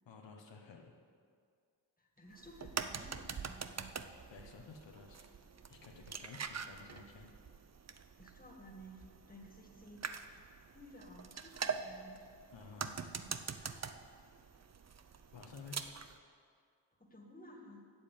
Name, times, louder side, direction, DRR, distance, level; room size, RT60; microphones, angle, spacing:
voice 1, 0.0-0.9 4.3-5.3 5.7-7.3 12.5-13.0 15.3-15.9, left 4 dB, 85° left, 1 dB, 1.1 m, -53 dB
voice 2, 2.0-3.9 8.2-10.0 10.3-10.4 10.7-12.3 13.0-13.8 17.0-17.8, equal, 20° left, 1 dB, 2.1 m, -55 dB
sound 1, 2.3-16.2, right 6 dB, 40° right, 0.6 m, -45 dB
8.2 x 7.1 x 8.6 m, 2.2 s
cardioid pair, 50°, 43 cm